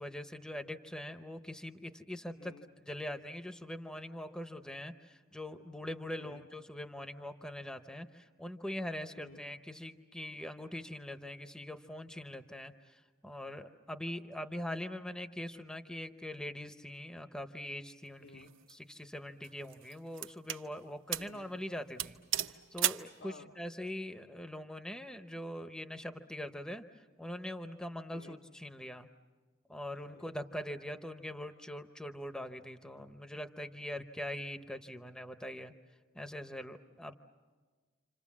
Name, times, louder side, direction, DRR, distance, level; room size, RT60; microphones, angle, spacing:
voice 1, 0.0-2.5 2.8-26.8 27.2-29.1 29.7-35.7 36.1-37.1, left 1 dB, 5° left, 8 dB, 0.7 m, -42 dB
voice 2, 2.3-2.7 6.2-6.5 9.2-9.4 18.2-18.5 21.2-21.5 23.2-23.5 28.1-28.4 29.9-30.3, left 2 dB, 90° left, 1 dB, 2.1 m, -54 dB
sound 1, 18.4-18.7 19.4-20.7 21.1-21.4 21.6-21.7 22.0-23.1, right 11 dB, 70° right, 0.8 m, -35 dB
29.0 x 26.5 x 7.3 m, 1.4 s
head